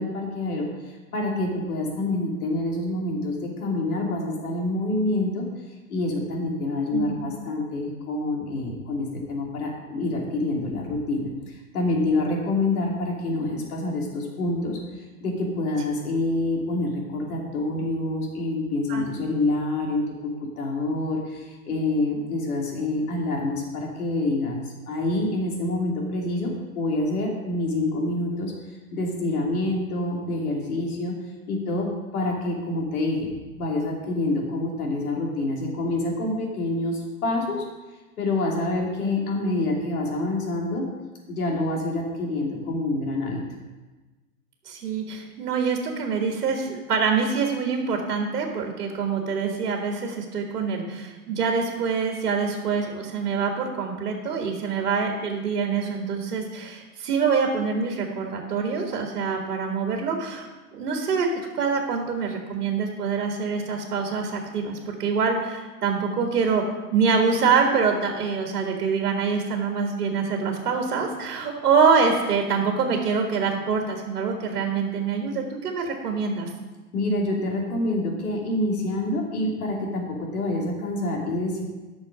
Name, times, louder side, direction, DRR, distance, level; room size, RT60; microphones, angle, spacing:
voice 1, 0.0-5.4 5.9-14.8 15.2-24.6 24.9-28.5 28.9-31.1 31.5-31.9 32.1-33.3 33.6-37.6 38.2-40.8 41.3-43.4 76.9-80.0 80.3-81.6, left 2 dB, 70° left, -1 dB, 2.9 m, -27 dB
voice 2, 44.7-60.5 60.7-61.3 61.6-66.6 66.9-76.5, right 5 dB, 75° right, 2 dB, 1.8 m, -25 dB
11.0 x 6.4 x 5.0 m, 1.2 s
hypercardioid pair, 145°, 46 cm